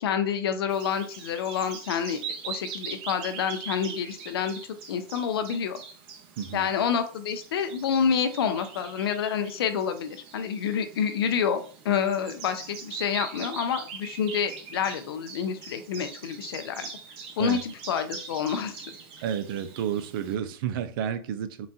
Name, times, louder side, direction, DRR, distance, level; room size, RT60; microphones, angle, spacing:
voice 1, 0.0-4.6 4.9-5.8 6.5-11.6 11.8-16.9 17.4-18.8, left 7 dB, 85° left, 0.6 m, -28 dB
Bird vocalization bird call bird song, 0.7-20.4, right 6 dB, 45° right, 0.9 m, -42 dB
voice 2, 6.4-6.7 17.4-17.6 19.2-21.7, right 9 dB, 65° right, 0.4 m, -31 dB
3.9 x 2.3 x 2.6 m
hypercardioid pair, 125°, 12 cm